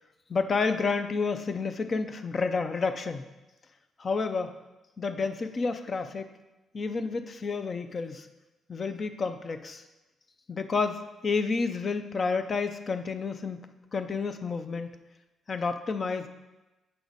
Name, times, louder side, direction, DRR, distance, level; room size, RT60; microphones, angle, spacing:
voice 1, 0.3-3.2 4.0-4.5 5.0-6.3 6.7-8.3 8.7-9.8 10.5-13.6 13.9-14.9 15.5-16.3, left 4 dB, 40° left, 9 dB, 0.5 m, -30 dB
6.9 x 4.8 x 4.0 m, 1.1 s
cardioid pair, 90°, 0 cm